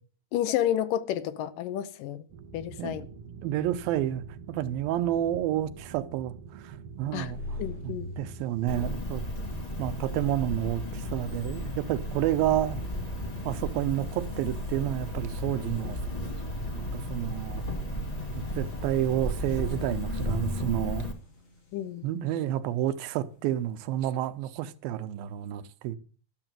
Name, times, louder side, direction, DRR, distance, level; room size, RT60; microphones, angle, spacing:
voice 1, 0.3-2.2 2.5-3.1 7.1-7.3 7.6-8.1 21.7-22.1, left 11 dB, 75° left, 2.4 m, -30 dB
sound 1, 2.3-8.9, right 5 dB, 55° right, 1.9 m, -46 dB
voice 2, 3.4-7.4 7.8-9.2 9.8-12.8 13.4-16.0 16.7-17.6 18.3-21.1 22.0-26.0, right 12 dB, 90° right, 2.6 m, -30 dB
sound 2, 7.0-24.4, left 1 dB, 50° left, 4.4 m, -46 dB
Cricket, 8.7-21.1, left 1 dB, 25° left, 0.9 m, -34 dB
13.0 x 7.9 x 7.5 m
omnidirectional pair, 4.1 m